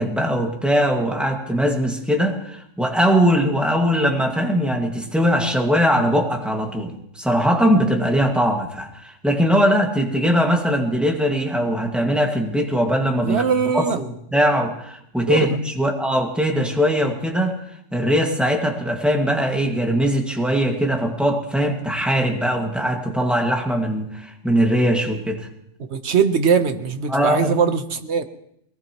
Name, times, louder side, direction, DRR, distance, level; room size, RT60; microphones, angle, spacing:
voice 1, 0.0-13.4 13.7-17.6 17.9-25.5 27.1-27.5, equal, ahead, 1 dB, 1.8 m, -21 dB
voice 2, 13.2-14.0 15.3-15.6 25.9-28.2, right 6 dB, 60° right, 9 dB, 1.2 m, -21 dB
21.5 x 19.0 x 3.0 m, 0.73 s
omnidirectional pair, 1.3 m